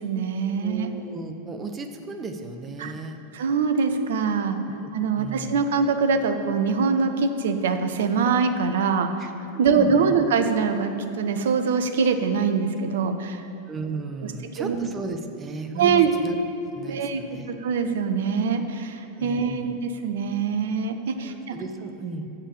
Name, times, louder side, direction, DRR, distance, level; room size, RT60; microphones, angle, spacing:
voice 1, 0.0-0.9 2.8-2.9 3.3-4.6 4.9-9.3 9.6-13.4 14.6-14.8 15.8-16.1 16.9-17.2 17.6-21.5, right 5 dB, 60° right, 8 dB, 0.7 m, -23 dB
voice 2, 0.6-3.2 4.7-4.9 5.2-5.6 9.2-10.2 13.7-16.4 16.7-17.5 19.1-19.7 21.2-22.3, right 3 dB, 20° right, 6 dB, 0.8 m, -35 dB
7.5 x 6.6 x 7.6 m, 3.0 s
figure-of-eight pair, 90°, 0 cm